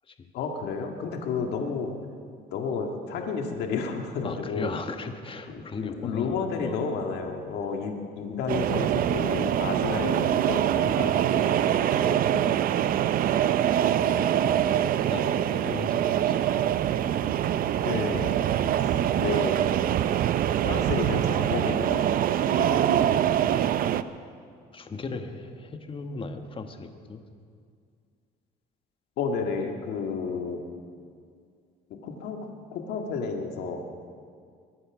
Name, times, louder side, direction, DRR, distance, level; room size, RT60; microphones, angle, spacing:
voice 1, 0.3-1.9 2.5-4.7 5.5-12.4 15.1-15.3 15.6-15.8 17.8-18.4 19.2-19.7 20.6-22.2 22.5-23.0 29.2-30.7 31.9-32.4 32.7-33.8, left 5 dB, 80° left, 3 dB, 1.9 m, -31 dB
voice 2, 4.2-6.8 10.9-11.4 14.9-16.9 22.4-22.9 24.7-27.2, left 4 dB, 30° left, 7 dB, 1.4 m, -38 dB
sound 1, 8.5-24.0, right 10 dB, 60° right, 0.6 m, -24 dB
23.0 x 9.7 x 6.2 m, 2.2 s
cardioid pair, 110°, 17 cm